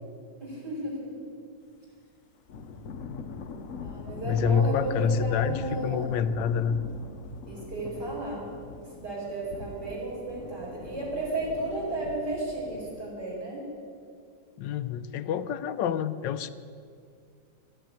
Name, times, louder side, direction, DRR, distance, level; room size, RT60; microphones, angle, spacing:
voice 1, 0.4-1.1 3.8-6.2 7.5-8.4 9.0-13.6, right 2 dB, 60° right, -5 dB, 5.6 m, -34 dB
Thunder / Rain, 2.5-13.0, left 4 dB, 55° left, 1.0 m, -42 dB
voice 2, 4.2-6.8 14.6-16.5, left 7 dB, 80° left, 12 dB, 1.2 m, -27 dB
12.5 x 11.5 x 9.0 m, 2.3 s
omnidirectional pair, 2.0 m